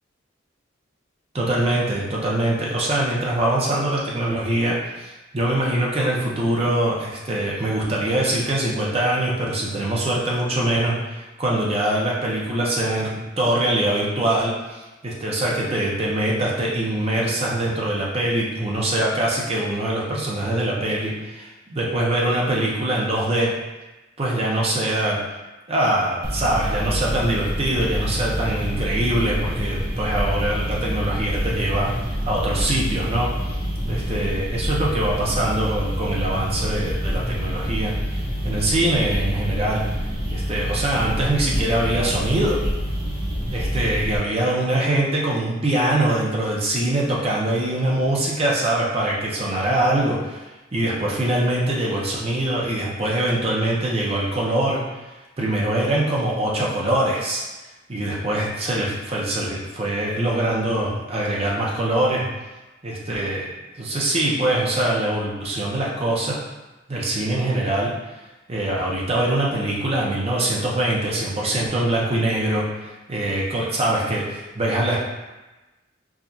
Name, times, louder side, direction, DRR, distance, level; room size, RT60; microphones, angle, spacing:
voice 1, 1.3-23.5 24.2-25.2 25.7-31.9 32.2-33.3 33.9-39.8 40.3-42.6 43.5-54.8 55.4-57.4 57.9-62.3 62.8-63.5 63.8-66.4 66.9-67.9 68.5-75.0, right 1 dB, 30° right, -4 dB, 0.7 m, -23 dB
sound 1, 26.2-44.2, equal, 55° right, 1.2 m, -26 dB
4.8 x 2.4 x 2.7 m, 1.1 s
head